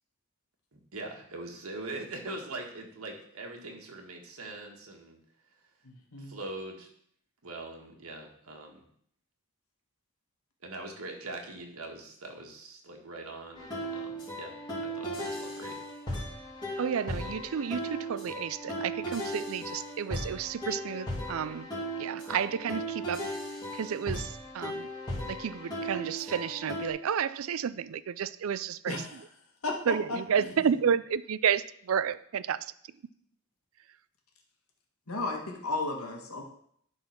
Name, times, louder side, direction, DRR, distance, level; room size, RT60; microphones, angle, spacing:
voice 1, 0.7-5.2 6.2-6.9 7.4-8.8 10.6-15.8 30.2-30.9, right 2 dB, 85° right, 1.7 m, -42 dB
voice 2, 5.8-6.3 28.9-29.2 29.6-30.2 35.1-36.4, left 2 dB, 85° left, 1.7 m, -34 dB
sound 1, 13.6-26.9, equal, 20° left, 2.7 m, -37 dB
voice 3, 16.8-21.7 22.0-23.3 23.7-24.9 25.3-29.0 29.9-32.6, right 7 dB, 70° right, 0.4 m, -31 dB
11.0 x 4.1 x 5.9 m
head